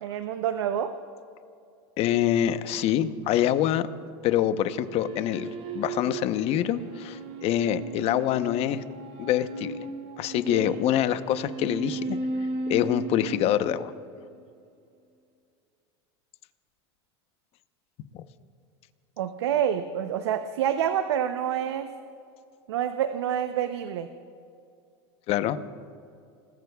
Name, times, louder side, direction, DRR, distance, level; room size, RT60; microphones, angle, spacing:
voice 1, 0.0-0.9 10.5-10.7 19.2-21.9 22.7-24.1, right 9 dB, 85° right, 9 dB, 0.7 m, -27 dB
voice 2, 2.0-3.9 4.2-8.8 9.2-9.8 10.2-12.2 12.7-13.9 25.3-25.6, left 11 dB, 45° left, 11 dB, 0.9 m, -25 dB
sound 1, 4.6-14.2, right 2 dB, 55° right, 4.6 m, -36 dB
29.5 x 20.0 x 2.4 m, 2.4 s
supercardioid pair, 110°, 14 cm